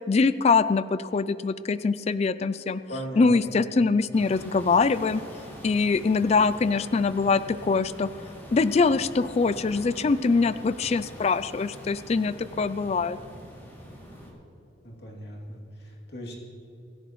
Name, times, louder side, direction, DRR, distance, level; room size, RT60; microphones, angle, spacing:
voice 1, 0.1-2.8 3.2-5.2 5.6-8.1 8.5-13.2, left 4 dB, 35° left, 14 dB, 0.3 m, -23 dB
voice 2, 2.9-3.3 14.8-16.3, equal, 60° left, -1 dB, 2.8 m, -38 dB
sound 1, 4.1-14.3, equal, 10° left, 2.7 m, -44 dB
24.5 x 11.0 x 3.1 m, 2.9 s
head